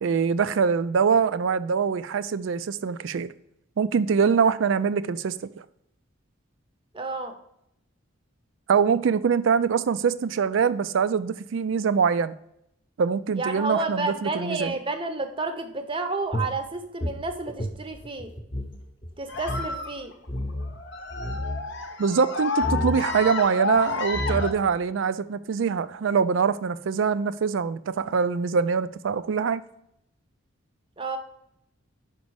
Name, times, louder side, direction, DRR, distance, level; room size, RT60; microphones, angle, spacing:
voice 1, 0.0-3.3 3.8-5.4 8.7-12.3 13.0-14.7 22.0-29.6, right 6 dB, 65° right, 0.3 m, -24 dB
voice 2, 6.9-7.3 13.3-18.3 19.2-20.1 31.0-31.2, right 3 dB, 25° right, 0.7 m, -30 dB
sound 1, 16.3-18.8 19.0-19.1 19.4-19.7 20.3-20.7 21.1-21.6 22.6-23.0 23.8-23.9 24.1-24.7, left 1 dB, 25° left, 0.8 m, -30 dB
sound 2, 19.3-24.5, left 4 dB, 55° left, 0.7 m, -31 dB
5.3 x 5.2 x 4.6 m
head